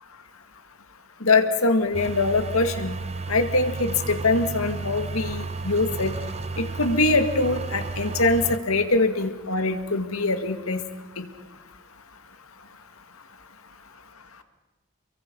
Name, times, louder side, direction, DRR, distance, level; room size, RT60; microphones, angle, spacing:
voice 1, 1.2-3.0 3.3-6.1 6.6-10.8 11.2-11.3, left 3 dB, 80° left, 8 dB, 2.2 m, -23 dB
sound 1, 1.9-8.6, right 3 dB, 30° right, 1.0 m, -33 dB
29.5 x 23.0 x 5.5 m, 1.2 s
head